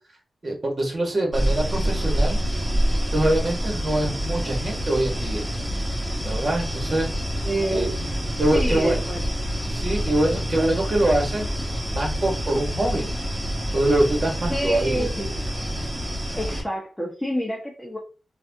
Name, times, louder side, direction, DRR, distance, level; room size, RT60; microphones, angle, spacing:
voice 1, 0.4-2.4 3.1-5.5 6.2-7.1 7.7-7.9 8.4-9.0 9.7-11.5 11.9-13.1 13.7-15.1, right 1 dB, 45° right, 1 dB, 1.6 m, -24 dB
sound 1, 1.3-16.6, equal, 10° right, 1.9 m, -27 dB
voice 2, 7.4-7.9 8.5-9.2 14.5-15.4 16.4-18.0, equal, 5° left, -2 dB, 1.0 m, -28 dB
3.9 x 2.5 x 2.8 m, 0.35 s
supercardioid pair, 40°, 0 cm